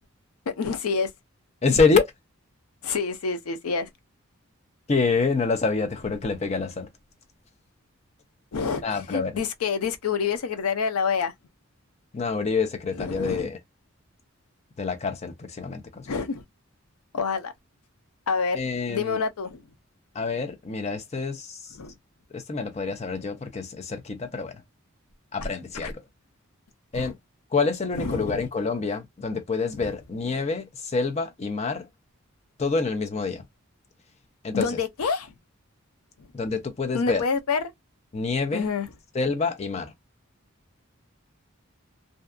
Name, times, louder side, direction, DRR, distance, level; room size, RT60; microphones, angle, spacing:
voice 1, 0.6-1.1 2.8-3.9 8.5-11.3 13.0-13.5 16.1-16.4 17.1-17.5 18.3-19.6 21.8-21.9 25.8-25.9 26.9-27.1 27.9-28.5 29.7-29.9 34.5-35.3 36.9-37.6 38.5-38.9, left 5 dB, 85° left, 0.5 m, -27 dB
voice 2, 1.6-2.0 4.9-6.9 8.8-9.4 12.1-13.6 14.8-16.1 18.5-19.2 20.1-21.8 22.3-24.6 25.3-26.0 26.9-27.2 27.5-31.9 32.6-33.4 34.4-34.8 36.3-37.2 38.1-38.7 39.1-39.9, left 4 dB, 30° left, 0.4 m, -27 dB
2.6 x 2.2 x 2.3 m
head